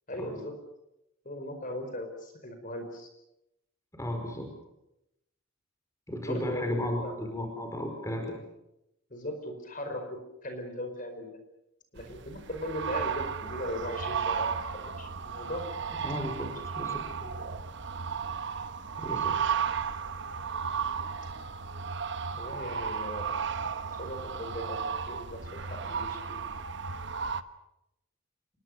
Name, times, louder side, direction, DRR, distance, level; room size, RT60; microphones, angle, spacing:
voice 1, 0.1-0.5 1.2-3.1 6.2-7.1 9.1-10.0 10.4-11.3 11.9-15.7 16.8-17.6 22.4-23.4 24.0-26.4, equal, 40° left, 6 dB, 5.0 m, -38 dB
voice 2, 3.9-4.5 6.1-8.4 15.9-17.0 19.0-19.4, left 1 dB, 15° left, 4 dB, 5.0 m, -34 dB
sound 1, 12.0-27.4, right 6 dB, 55° right, 1.2 m, -34 dB
28.0 x 22.5 x 6.7 m, 0.85 s
head